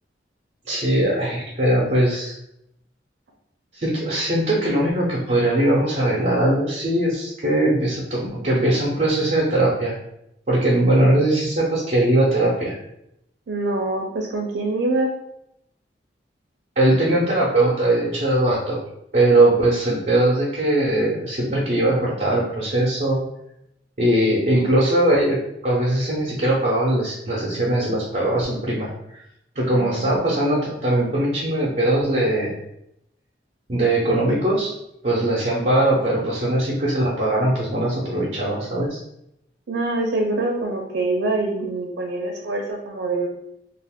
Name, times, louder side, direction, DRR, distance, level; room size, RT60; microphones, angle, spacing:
voice 1, 0.7-2.3 3.7-9.9 10.5-12.8 16.8-18.8 19.1-23.2 24.0-25.4 25.6-29.2 29.6-32.6 33.7-34.7 35.0-39.0, right 1 dB, 45° right, -6 dB, 0.6 m, -20 dB
voice 2, 13.5-15.1 29.7-30.2 39.7-43.3, right 2 dB, 90° right, 1 dB, 0.5 m, -25 dB
2.5 x 2.4 x 3.4 m, 0.81 s
head